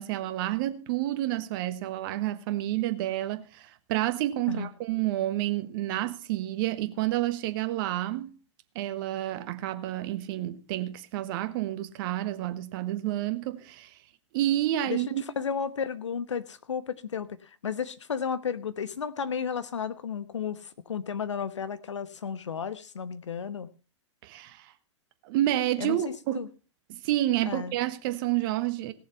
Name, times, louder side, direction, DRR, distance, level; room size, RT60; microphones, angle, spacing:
voice 1, 0.0-8.3 8.7-13.9 14.3-15.2 24.2-24.7 25.2-26.4 26.9-28.9, right 14 dB, 45° right, 1.4 m, -29 dB
voice 2, 15.4-17.4 17.6-23.7 25.8-26.5 27.5-27.7, left 7 dB, 75° left, 1.2 m, -33 dB
18.0 x 7.2 x 5.6 m
figure-of-eight pair, 105°, 16 cm